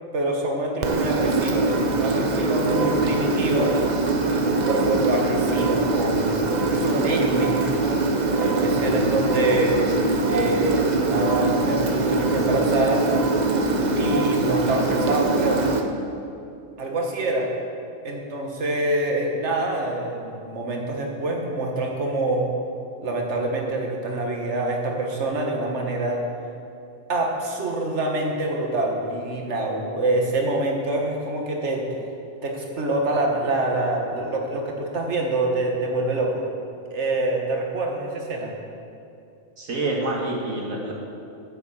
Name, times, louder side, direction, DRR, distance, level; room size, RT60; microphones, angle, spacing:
voice 1, 0.1-3.7 4.7-7.7 8.4-9.9 10.3-13.1 13.9-15.6 16.8-17.5 18.0-22.5 23.0-26.2 27.1-31.8 32.4-36.5 36.9-38.5, right 2 dB, 55° right, 0 dB, 1.8 m, -26 dB
Engine, 0.8-15.8, right 2 dB, 40° right, 0.8 m, -22 dB
voice 2, 39.6-40.9, right 2 dB, 80° right, -2 dB, 2.3 m, -27 dB
10.5 x 8.2 x 7.3 m, 2.6 s
omnidirectional pair, 1.4 m